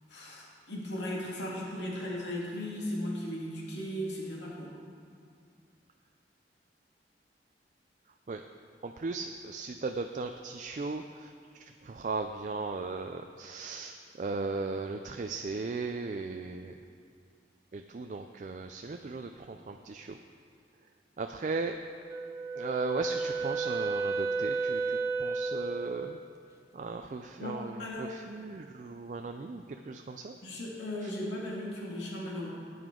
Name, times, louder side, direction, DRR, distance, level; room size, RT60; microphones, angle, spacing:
voice 1, 0.1-4.7 27.4-28.1 30.4-32.5, left 1 dB, 80° left, -4 dB, 2.2 m, -37 dB
voice 2, 8.8-16.7 17.7-20.2 21.2-21.8 22.6-26.2 26.7-30.4 31.0-31.1, right 3 dB, 45° right, 5 dB, 0.4 m, -37 dB
Wind instrument woodwind instrument, 22.1-26.1, right 3 dB, 15° right, 0.8 m, -32 dB
15.5 x 9.4 x 3.8 m, 2.3 s
head